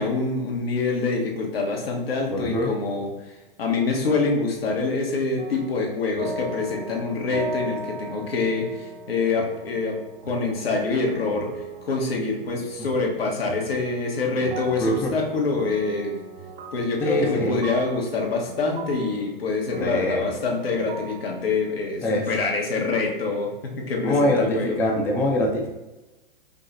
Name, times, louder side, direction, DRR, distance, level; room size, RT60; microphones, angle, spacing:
voice 1, 0.0-3.1 3.6-9.9 10.3-11.5 11.8-16.1 16.7-24.8, left 3 dB, 80° left, 0 dB, 1.1 m, -25 dB
voice 2, 2.3-2.7 12.8-12.9 14.8-15.1 17.0-17.5 19.8-20.2 22.0-22.3 24.0-25.7, left 1 dB, 10° left, 0 dB, 0.3 m, -23 dB
sound 1, 5.4-21.8, right 2 dB, 70° right, 0.8 m, -39 dB
5.2 x 2.8 x 2.5 m, 1.1 s
hypercardioid pair, 110°, 29 cm